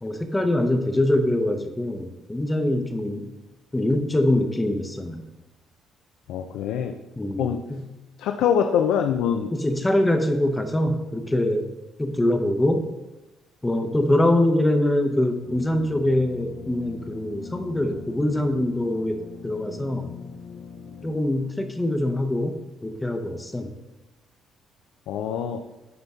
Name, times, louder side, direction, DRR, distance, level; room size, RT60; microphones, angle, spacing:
voice 1, 0.0-3.3 3.7-5.3 7.2-7.8 9.5-11.7 12.0-12.8 13.6-19.2 19.4-20.1 21.0-23.7, left 1 dB, 10° left, 6 dB, 0.6 m, -24 dB
voice 2, 6.3-7.0 7.4-7.6 8.2-9.5 25.1-25.6, left 8 dB, 90° left, 5 dB, 0.4 m, -24 dB
sound 1, 15.4-21.2, left 6 dB, 50° left, 0.6 m, -41 dB
9.5 x 5.3 x 3.6 m, 1.0 s
cardioid pair, 140°, 0 cm